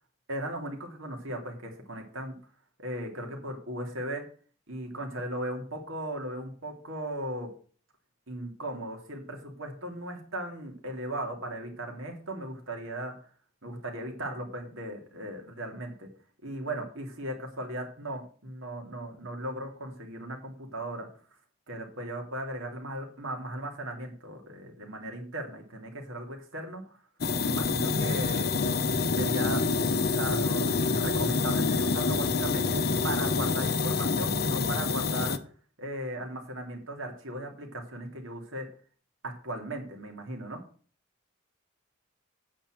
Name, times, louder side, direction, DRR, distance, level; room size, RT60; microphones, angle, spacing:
voice 1, 0.3-2.4 2.8-4.2 4.7-7.5 8.3-13.1 13.6-16.1 16.4-21.1 21.7-27.0 27.4-28.5 29.2-29.6 30.1-35.4 35.8-38.7 39.2-40.6, right 1 dB, 75° right, 2 dB, 2.9 m, -37 dB
sound 1, 27.2-35.4, left 4 dB, 50° left, 0.7 m, -27 dB
8.9 x 5.7 x 7.7 m, 0.43 s
head